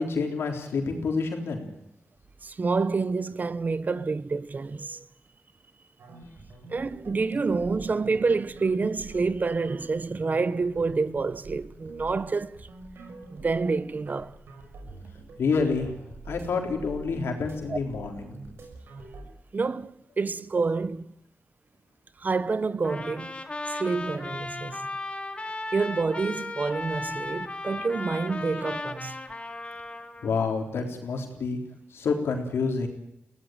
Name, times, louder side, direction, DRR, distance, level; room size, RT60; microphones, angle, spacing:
voice 1, 0.0-1.7 15.4-15.9 16.3-18.3 30.2-31.6 31.9-32.9, left 4 dB, 90° left, 3.8 m, -28 dB
voice 2, 2.4-5.0 6.7-12.7 13.3-14.4 17.7-17.8 19.5-21.1 22.2-23.4 23.7-24.8 25.7-29.2, right 4 dB, 45° right, 1.0 m, -28 dB
sound 1, 6.0-19.3, right 2 dB, 90° right, 6.0 m, -45 dB
Trumpet, 22.8-30.3, left 2 dB, 30° left, 2.4 m, -36 dB
22.5 x 16.5 x 9.0 m
cardioid pair, 70°, 4 cm